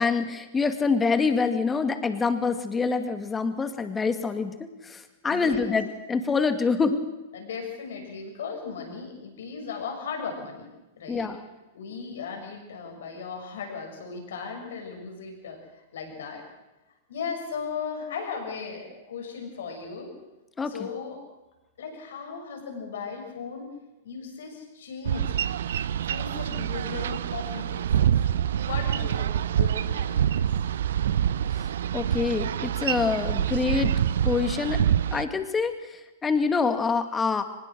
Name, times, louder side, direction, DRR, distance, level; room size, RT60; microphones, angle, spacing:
voice 1, 0.0-7.0 11.1-11.4 20.6-20.7 31.6-31.7 31.9-33.9 34.2-34.8 35.1-37.4, left 4 dB, 15° left, 9 dB, 2.1 m, -26 dB
voice 2, 5.3-5.8 7.3-11.3 11.7-16.4 17.1-20.1 20.6-21.2 21.8-23.7 24.0-25.3 26.0-28.1 28.7-30.5, left 5 dB, 70° left, 3 dB, 6.8 m, -37 dB
Boat Water vehicle, 25.0-35.2, right 10 dB, 65° right, 0.7 m, -26 dB
24.0 x 20.5 x 6.3 m, 1.1 s
figure-of-eight pair, 105°, 0 cm